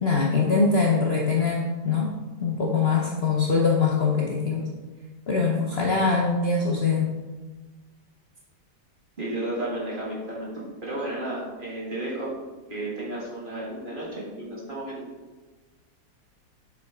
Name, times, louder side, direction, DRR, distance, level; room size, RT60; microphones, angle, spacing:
voice 1, 0.0-2.1 2.4-4.7 5.3-7.1, left 4 dB, 50° left, -2 dB, 0.8 m, -23 dB
voice 2, 9.2-10.5 10.8-12.3 12.7-15.0, right 1 dB, 30° right, -5 dB, 1.9 m, -32 dB
7.1 x 6.0 x 3.7 m, 1.3 s
omnidirectional pair, 1.8 m